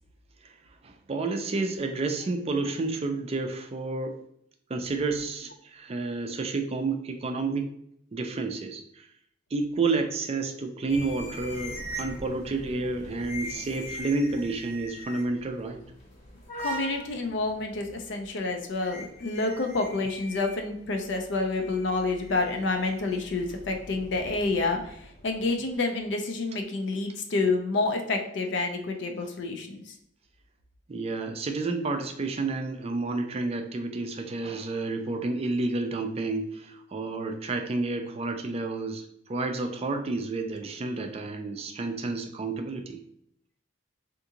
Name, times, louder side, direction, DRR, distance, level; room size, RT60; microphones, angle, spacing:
voice 1, 0.8-4.2 4.7-7.7 8.1-9.1 9.5-15.8 30.9-43.0, right 3 dB, 30° right, 5 dB, 0.4 m, -30 dB
sound 1, 10.9-25.7, equal, 35° left, 0.9 m, -42 dB
voice 2, 16.6-29.9, left 3 dB, 65° left, 4 dB, 0.5 m, -29 dB
3.6 x 2.5 x 2.8 m, 0.73 s
head